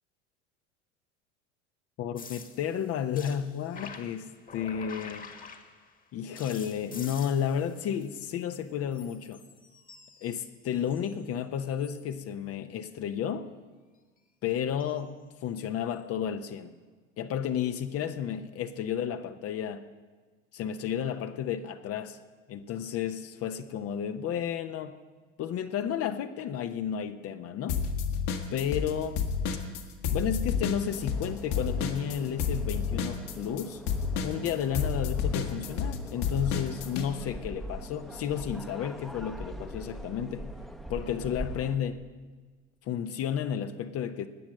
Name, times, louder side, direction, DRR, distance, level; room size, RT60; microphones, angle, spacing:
voice 1, 2.0-5.3 6.1-9.4 10.2-13.5 14.4-16.7 17.2-19.8 20.5-22.2 22.5-24.9 25.4-27.8 28.5-29.2 30.1-33.8 34.2-40.5 40.9-42.1 42.8-44.3, left 9 dB, 40° left, 9 dB, 0.8 m, -32 dB
sound 1, 2.2-6.0 6.4-8.6 8.9-11.2 11.7-12.1 14.8-15.0 15.9-16.0, left 5 dB, 25° left, 1.5 m, -48 dB
sound 2, 27.7-28.9 29.2-37.1, left 6 dB, 60° left, 1.9 m, -30 dB
sound 3, 30.9-41.8, equal, ahead, 0.9 m, -43 dB
20.0 x 7.2 x 6.4 m, 1.4 s
hypercardioid pair, 80°, 36 cm